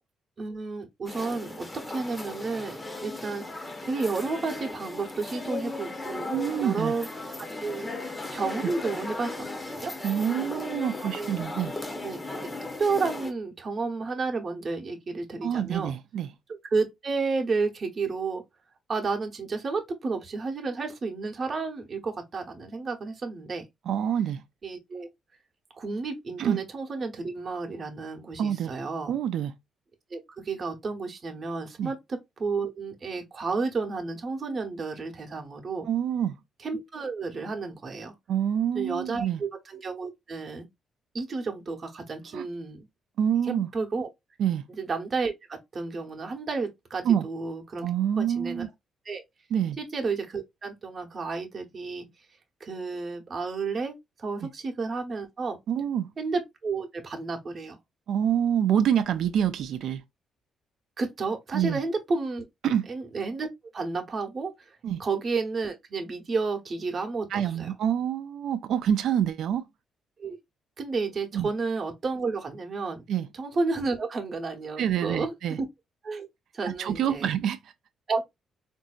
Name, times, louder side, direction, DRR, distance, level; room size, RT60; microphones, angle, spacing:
voice 1, 0.4-6.3 6.6-7.1 7.6-7.9 8.3-9.9 11.0-11.5 12.0-12.2 12.8-15.9 16.6-18.4 18.9-23.7 24.6-25.1 25.8-29.2 30.1-35.9 36.6-38.1 38.7-40.7 41.1-42.9 43.4-44.1 44.8-47.9 48.1-48.7 49.0-49.2 49.8-52.1 52.6-55.6 56.2-57.8 61.0-62.4 62.9-63.5 63.7-67.7 70.2-70.4 70.8-73.0 73.3-75.7 76.0-76.3 76.5-77.3 78.1-78.2, right 4 dB, 40° right, 0.9 m, -31 dB
sound 1, 1.1-13.3, left 2 dB, 15° left, 0.8 m, -36 dB
voice 2, 6.3-6.9 10.0-11.7 15.4-16.3 23.9-24.4 26.4-26.6 28.4-28.7 29.1-29.5 31.8-31.9 35.9-36.4 38.3-39.4 42.3-42.4 43.2-43.7 44.4-44.6 47.0-47.3 47.8-48.7 49.5-49.8 54.4-54.5 55.7-56.1 58.1-60.0 61.5-61.8 62.6-62.9 64.8-65.0 67.3-69.6 71.3-71.5 73.1-73.3 74.8-75.6 76.6-77.6, right 9 dB, 70° right, 0.5 m, -26 dB
3.9 x 2.6 x 2.3 m
cardioid pair, 90°, 0 cm